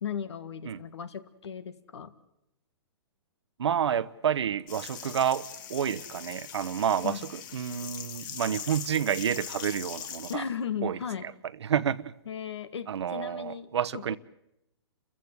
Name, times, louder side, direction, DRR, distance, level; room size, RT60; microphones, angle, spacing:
voice 1, 0.0-2.1 7.0-7.3 10.3-11.3 12.3-14.2, left 7 dB, 85° left, 2.0 m, -36 dB
voice 2, 3.6-7.2 7.5-10.4 10.8-11.3 11.6-12.1 12.9-14.2, right 8 dB, 80° right, 1.0 m, -29 dB
sound 1, 4.7-10.3, left 8 dB, 45° left, 2.4 m, -41 dB
30.0 x 15.0 x 8.1 m
hypercardioid pair, 145°, 14 cm